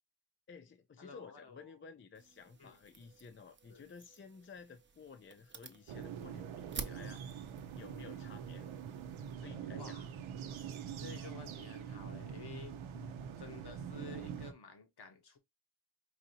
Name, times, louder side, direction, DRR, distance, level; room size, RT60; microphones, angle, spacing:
voice 1, 0.5-7.5 7.7-8.7 9.4-10.0 12.9-13.2, left 5 dB, 30° left, 0.4 m, -54 dB
voice 2, 1.0-1.8 2.6-2.8 3.7-3.8 7.9-8.2 9.7-10.1 11.0-12.8 13.4-15.4, left 4 dB, 55° left, 1.2 m, -52 dB
sound 1, 2.1-9.4, right 5 dB, 25° right, 0.6 m, -51 dB
sound 2, 5.9-14.5, right 8 dB, 85° right, 0.7 m, -44 dB
4.8 x 2.7 x 2.7 m
cardioid pair, 75°, 46 cm